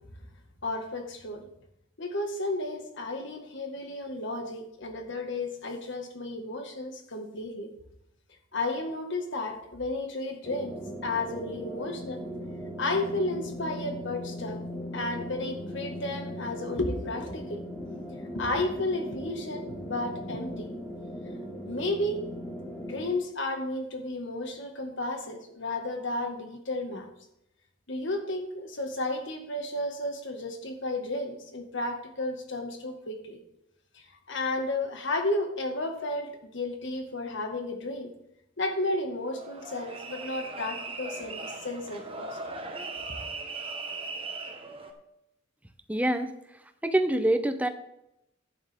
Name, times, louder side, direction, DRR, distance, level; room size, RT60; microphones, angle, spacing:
voice 1, 0.6-1.5 2.0-7.7 8.5-10.7 11.0-12.2 12.8-14.6 14.9-17.6 18.4-20.7 21.7-22.3 22.8-27.1 27.9-33.4 33.9-38.1 38.6-42.4, left 2 dB, 65° left, 4 dB, 1.9 m, -33 dB
sound 1, 10.4-23.1, equal, 15° left, 1.8 m, -39 dB
sound 2, 39.2-44.9, right 3 dB, 30° right, 1.4 m, -39 dB
voice 2, 45.9-46.4 46.8-47.7, right 1 dB, 5° right, 8 dB, 0.8 m, -25 dB
11.5 x 9.9 x 3.7 m, 0.81 s
head